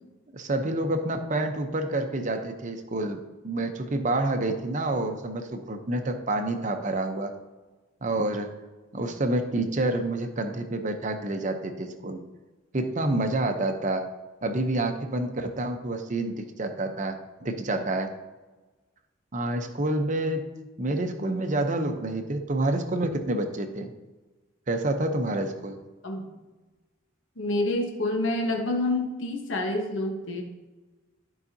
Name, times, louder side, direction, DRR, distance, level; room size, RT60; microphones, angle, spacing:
voice 1, 0.3-7.3 8.0-8.5 8.9-12.2 12.7-14.1 14.4-18.1 19.3-20.4 20.8-23.9 24.7-25.8, right 2 dB, 40° right, 6 dB, 0.7 m, -28 dB
voice 2, 27.4-30.4, left 2 dB, 65° left, 2 dB, 1.2 m, -28 dB
13.5 x 4.8 x 2.8 m, 1.2 s
head